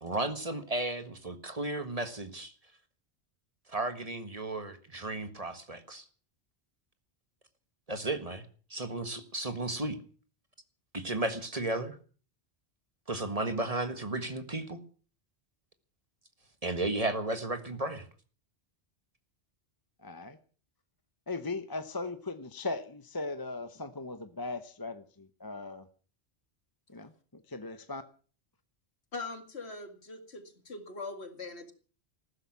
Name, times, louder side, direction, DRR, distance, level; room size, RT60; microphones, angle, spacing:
voice 1, 0.0-2.5 3.7-6.0 7.9-8.4 8.7-10.0 10.9-11.9 13.1-14.8 16.6-18.0, right 2 dB, 35° right, 10 dB, 1.7 m, -34 dB
voice 2, 20.0-20.4 21.3-25.9 26.9-28.0, left 3 dB, 20° left, 10 dB, 0.9 m, -38 dB
voice 3, 29.1-31.7, left 3 dB, 75° left, 8 dB, 2.4 m, -41 dB
15.0 x 13.0 x 7.3 m, 0.41 s
omnidirectional pair, 1.1 m